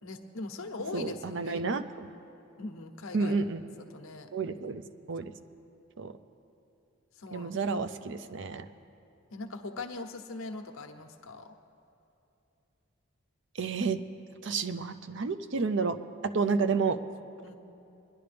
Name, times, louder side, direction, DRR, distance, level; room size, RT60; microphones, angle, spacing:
voice 1, 0.0-1.6 2.6-3.4 3.9-4.3 7.2-7.5 9.3-11.5 17.4-17.5, left 3 dB, 80° left, 6 dB, 1.0 m, -41 dB
voice 2, 0.9-2.1 3.1-3.6 4.3-4.8 5.1-5.3 6.0-6.1 7.3-8.7 13.6-14.0 14.4-16.0 16.2-17.0, right 4 dB, 60° right, 10 dB, 0.5 m, -30 dB
23.0 x 10.5 x 3.4 m, 2.8 s
head